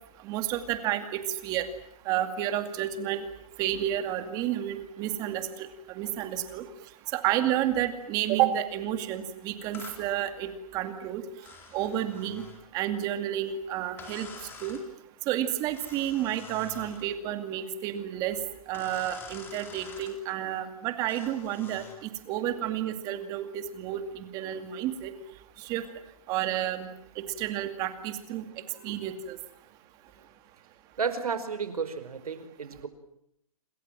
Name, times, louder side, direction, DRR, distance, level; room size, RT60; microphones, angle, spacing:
voice 1, 0.2-1.7 2.1-3.2 3.6-5.7 5.9-6.6 7.1-11.2 11.7-12.5 12.7-14.3 14.6-14.8 15.3-18.4 18.7-25.1 25.6-25.9 26.3-26.9 27.2-28.4 28.8-29.4, right 11 dB, 20° right, 9 dB, 2.3 m, -30 dB
sound 1, 9.7-10.0 11.4-12.6 14.0-14.9 15.7-17.1 18.7-20.2 21.1-22.0, left 5 dB, 10° left, 3.7 m, -47 dB
voice 2, 31.0-32.9, right 6 dB, 85° right, 11 dB, 5.0 m, -32 dB
28.0 x 27.5 x 7.6 m, 0.74 s
hypercardioid pair, 165°, 19 cm